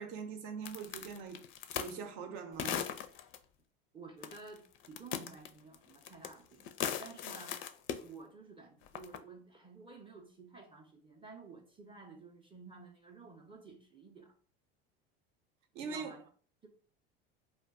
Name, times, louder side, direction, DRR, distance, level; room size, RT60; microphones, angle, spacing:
voice 1, 0.0-1.4 1.7-2.9 15.7-16.1, right 6 dB, 60° right, 0.7 m, -42 dB
sound 1, 0.6-2.0 2.6-3.4 4.2-4.6 4.8-6.3 6.6-8.0 8.9-9.2, left 9 dB, 40° left, 0.4 m, -38 dB
voice 2, 3.9-7.6 8.0-14.3 15.7-16.3, right 4 dB, 15° right, 0.5 m, -52 dB
2.3 x 2.2 x 3.5 m
hypercardioid pair, 85°, 30 cm